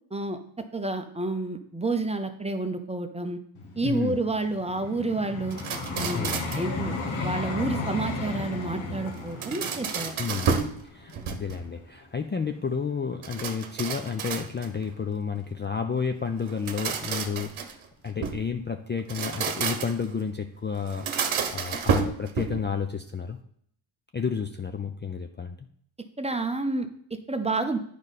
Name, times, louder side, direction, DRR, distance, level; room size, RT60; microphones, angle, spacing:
voice 1, 0.7-3.4 3.8-5.6 6.0-7.0 7.2-10.2 26.2-27.8, right 3 dB, 15° right, 7 dB, 0.7 m, -29 dB
Vehicle, 3.5-12.6 13.2-13.4, left 3 dB, 75° left, 1.4 m, -35 dB
voice 2, 3.8-4.2 6.1-6.5 10.2-17.8 18.0-21.1 21.5-23.4 24.1-25.7, left 6 dB, 25° left, 6 dB, 0.4 m, -31 dB
sound 1, 5.5-6.7 9.1-10.8 11.1-11.7 13.2-14.8 16.4-18.5 19.0-20.1 20.9-22.7, right 6 dB, 75° right, 1.0 m, -30 dB
8.9 x 5.1 x 4.1 m, 0.65 s
cardioid pair, 100°, 48 cm